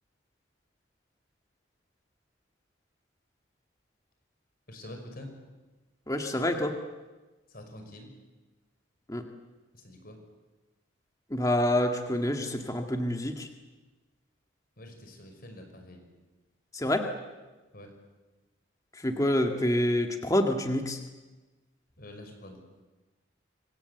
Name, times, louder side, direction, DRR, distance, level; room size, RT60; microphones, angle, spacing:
voice 1, 4.7-5.4 7.5-8.1 9.7-10.2 14.8-16.0 17.7-18.0 22.0-22.6, left 1 dB, 45° left, 5 dB, 5.5 m, -46 dB
voice 2, 6.1-6.8 9.1-9.2 11.3-13.5 16.7-17.1 18.9-21.0, left 1 dB, 15° left, 4 dB, 1.9 m, -27 dB
26.5 x 25.5 x 8.2 m, 1.2 s
head